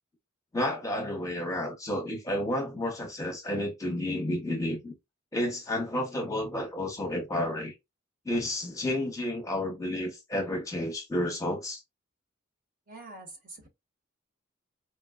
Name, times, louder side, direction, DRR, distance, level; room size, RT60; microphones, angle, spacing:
voice 1, 0.5-4.9 5.3-7.7 8.2-11.8, left 1 dB, 15° left, 0.8 m, -31 dB
voice 2, 12.9-13.7, right 2 dB, 45° right, 1.0 m, -45 dB
4.3 x 2.2 x 2.3 m
head